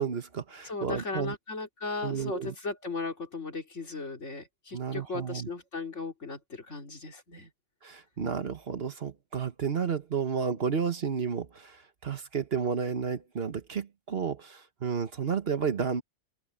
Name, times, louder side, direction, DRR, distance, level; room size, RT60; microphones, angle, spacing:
voice 1, 0.0-1.3 2.0-2.5 4.7-5.5 7.8-16.0, right 6 dB, 55° right, 1.4 m, -32 dB
voice 2, 0.6-7.5, left 3 dB, 70° left, 3.5 m, -37 dB
open air
omnidirectional pair, 1.3 m